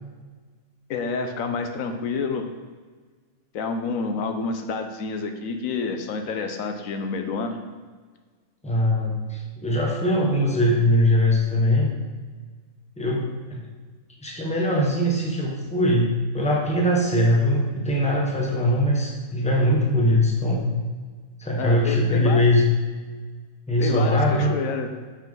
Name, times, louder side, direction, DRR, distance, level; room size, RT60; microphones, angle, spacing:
voice 1, 0.9-2.5 3.5-7.6 21.6-22.4 23.8-24.9, left 4 dB, 80° left, 6 dB, 1.1 m, -28 dB
voice 2, 8.6-11.9 13.0-13.6 14.2-20.7 21.4-22.6 23.7-24.5, left 1 dB, 5° left, -2 dB, 1.0 m, -21 dB
5.7 x 5.0 x 5.4 m, 1.5 s
omnidirectional pair, 1.4 m